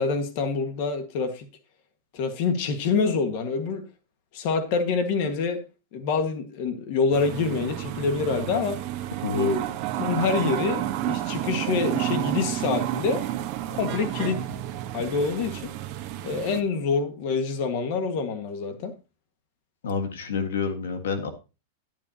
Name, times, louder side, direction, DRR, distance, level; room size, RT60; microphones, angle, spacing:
voice 1, 0.0-1.5 2.1-3.8 4.3-5.6 5.9-8.8 9.3-9.6 10.0-13.2 13.7-14.4 14.9-15.7 16.2-18.9, left 5 dB, 50° left, 1.6 m, -26 dB
sound 1, 7.1-16.6, right 13 dB, 40° right, 1.1 m, -30 dB
voice 2, 9.2-9.5 19.8-21.3, left 5 dB, 90° left, 1.6 m, -28 dB
10.5 x 10.5 x 2.8 m
supercardioid pair, 150°, 0 cm